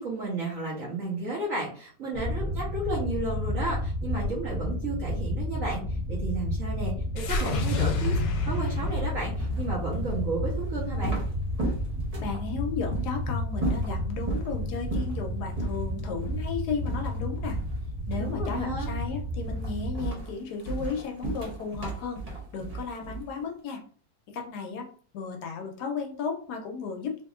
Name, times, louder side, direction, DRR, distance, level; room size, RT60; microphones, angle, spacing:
voice 1, 0.0-11.2 18.2-18.9, right 2 dB, 55° right, -6 dB, 1.2 m, -33 dB
sound 1, 2.1-20.0, left 1 dB, 5° right, 0.4 m, -32 dB
sound 2, 7.2-11.5, left 4 dB, 90° left, 1.3 m, -30 dB
sound 3, 8.8-12.4 12.9-13.1 13.5-14.5 14.9-15.2 15.5-15.8 16.2-16.4 16.9-17.8 18.1-18.5 18.8-19.1 19.5-23.4, right 2 dB, 75° right, 0.3 m, -34 dB
voice 2, 12.2-17.6 18.1-22.2 22.5-23.8 24.3-24.9 25.1-27.2, left 5 dB, 75° left, 3 dB, 1.1 m, -34 dB
3.5 x 2.8 x 2.3 m, 0.43 s
omnidirectional pair, 1.9 m